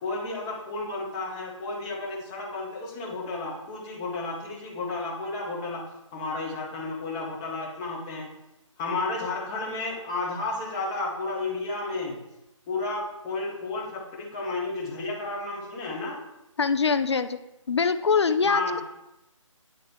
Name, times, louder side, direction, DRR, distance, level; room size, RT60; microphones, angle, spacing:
voice 1, 0.0-5.8 6.1-8.3 8.8-12.2 12.7-16.2 18.4-18.8, left 3 dB, 10° left, -3 dB, 0.5 m, -32 dB
voice 2, 16.6-17.4 17.7-18.8, left 5 dB, 55° left, 10 dB, 0.5 m, -23 dB
9.4 x 3.3 x 3.5 m, 0.92 s
figure-of-eight pair, 155°, 17 cm